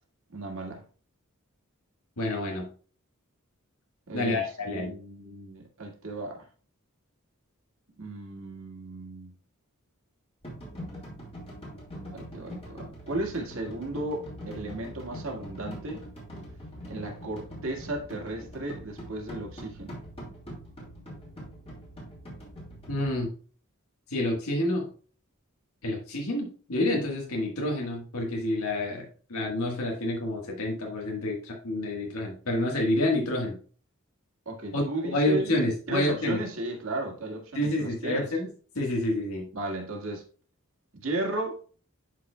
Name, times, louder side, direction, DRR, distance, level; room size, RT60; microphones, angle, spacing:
voice 1, 0.3-0.8 4.1-6.5 8.0-9.3 12.1-16.0 16.9-20.0 34.5-35.6 35.9-38.3 39.5-40.2 40.9-41.6, right 2 dB, 70° right, 1.8 m, -35 dB
voice 2, 2.2-2.7 4.1-4.9 22.9-23.3 24.1-24.9 25.8-33.6 34.7-34.8 35.1-36.4 37.5-38.5 38.7-39.5, left 1 dB, 85° left, 1.5 m, -28 dB
sound 1, 10.4-23.2, equal, 30° left, 2.6 m, -43 dB
11.0 x 4.6 x 2.2 m
head